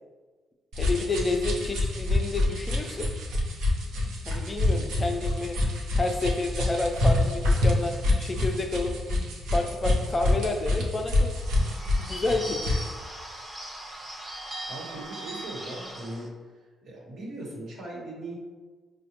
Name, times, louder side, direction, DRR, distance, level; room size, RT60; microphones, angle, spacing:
sound 1, 0.7-12.9, left 2 dB, 85° right, 0.7 m, -26 dB
voice 1, 0.8-3.1 4.3-5.6 6.0-8.9 9.5-11.6 12.0-12.7, left 2 dB, 30° left, 4 dB, 0.4 m, -30 dB
Bird / Bell, 11.3-16.3, right 1 dB, 15° right, 0.7 m, -39 dB
voice 2, 14.7-16.4 16.8-18.4, right 1 dB, 65° right, -3 dB, 1.0 m, -39 dB
4.8 x 2.1 x 2.9 m, 1.4 s
cardioid pair, 90°, 0 cm